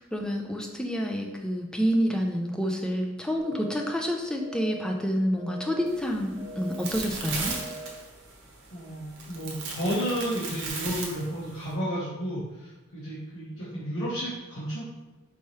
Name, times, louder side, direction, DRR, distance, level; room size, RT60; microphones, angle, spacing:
voice 1, 0.0-7.5, equal, 5° left, 1 dB, 0.4 m, -28 dB
sound 1, 3.4-3.9 4.4-4.9 5.4-5.9 6.4-6.9 7.4-7.9, right 2 dB, 15° right, 1.0 m, -41 dB
sound 2, 5.9-11.7, right 4 dB, 55° right, 0.9 m, -37 dB
voice 2, 8.7-14.8, equal, 75° left, -9 dB, 1.1 m, -32 dB
4.6 x 3.0 x 3.1 m, 1.1 s
head